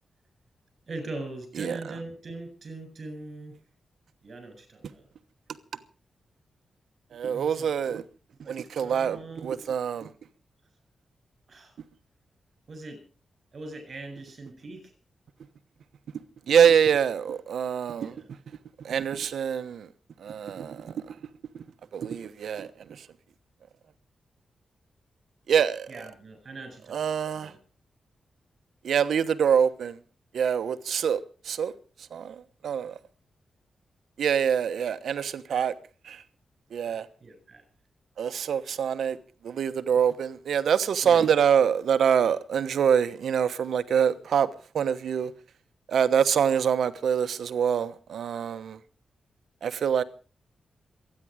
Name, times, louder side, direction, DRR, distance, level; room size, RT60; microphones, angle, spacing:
voice 1, 0.9-3.5 4.2-5.1 7.2-7.7 8.4-9.6 11.5-11.8 12.7-13.0 13.5-14.9 17.9-18.3 25.9-27.6 36.8-37.6 41.0-41.2, right 2 dB, 45° right, 7.8 m, -41 dB
voice 2, 7.1-8.0 8.5-10.1 16.5-18.1 18.8-19.9 20.2-21.1 21.9-23.1 25.5-25.9 26.9-27.5 28.8-30.0 30.3-31.2 31.4-31.7 32.1-32.3 32.6-33.0 34.2-35.7 36.0-36.2 36.7-37.1 38.2-39.2 39.4-44.5 44.7-45.3 45.9-48.8 49.6-50.0, right 8 dB, 80° right, 1.1 m, -25 dB
26.5 x 10.0 x 4.9 m
wide cardioid pair, 125°, 0 cm